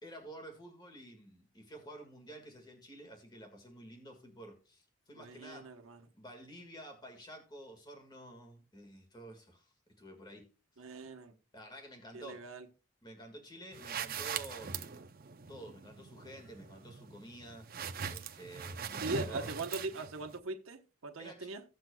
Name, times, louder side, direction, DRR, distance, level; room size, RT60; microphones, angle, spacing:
voice 1, 0.0-5.7 6.1-10.5 10.8-11.0 11.5-12.5 13.0-15.0 15.5-17.7 18.1-19.5 21.2-21.5, right 1 dB, 20° left, 1.8 m, -51 dB
voice 2, 5.2-6.1 10.8-11.3 12.1-12.7 18.9-21.6, right 2 dB, 75° right, 1.1 m, -41 dB
sound 1, 13.7-20.4, right 6 dB, 45° right, 0.6 m, -42 dB
16.0 x 7.7 x 2.3 m
head